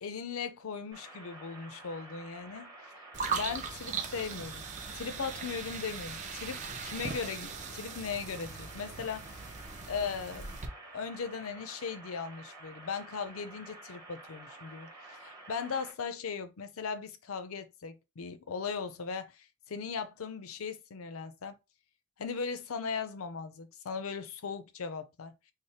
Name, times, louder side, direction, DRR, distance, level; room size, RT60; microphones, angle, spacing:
voice 1, 0.0-2.7 3.3-4.7 4.9-9.3 9.9-10.6 10.9-21.6 22.2-25.3, left 5 dB, 75° left, 0.5 m, -38 dB
sound 1, 0.9-15.9, right 2 dB, 15° right, 0.9 m, -50 dB
sound 2, 3.1-10.7, right 5 dB, 35° right, 0.5 m, -39 dB
3.2 x 2.0 x 4.1 m
head